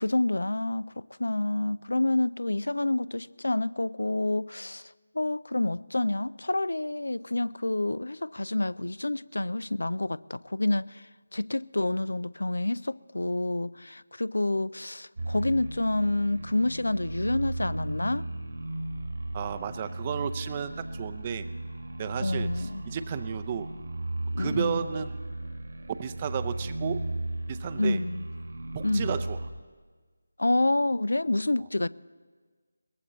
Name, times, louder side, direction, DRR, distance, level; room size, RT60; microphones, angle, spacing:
voice 1, 0.0-18.2 22.2-22.8 24.3-24.9 27.8-28.3 28.8-29.2 30.4-31.9, left 2 dB, 70° left, 0.3 m, -28 dB
sound 1, 15.2-29.5, right 2 dB, 60° right, 1.5 m, -35 dB
voice 2, 19.3-21.4 22.0-23.7 24.4-25.3 25.9-27.0 27.5-28.0 28.7-29.4, right 8 dB, 25° right, 0.6 m, -33 dB
22.0 x 18.5 x 3.1 m
figure-of-eight pair, 160°, 0 cm